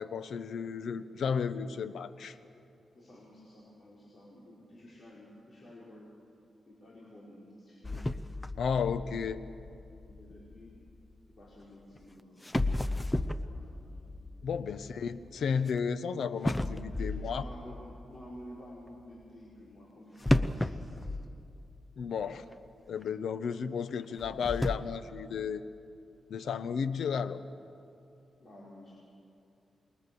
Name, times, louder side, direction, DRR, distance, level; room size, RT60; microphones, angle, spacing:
voice 1, 0.0-2.4 8.6-9.4 14.4-17.4 22.0-22.5 22.9-25.6 26.3-27.4, left 6 dB, 75° left, 13 dB, 0.9 m, -33 dB
voice 2, 2.9-6.1 6.7-8.1 8.8-9.4 10.0-10.7 11.4-14.1 16.9-21.1 28.4-28.9, equal, 40° left, -6 dB, 5.0 m, -52 dB
sound 1, 7.8-11.0 12.0-12.1 12.4-15.8 16.4-18.3 20.2-22.0 22.3-22.4 23.0-23.1 24.1-24.8, left 1 dB, 15° left, 0.7 m, -33 dB
27.5 x 21.5 x 7.0 m, 2.6 s
wide cardioid pair, 120°, 0 cm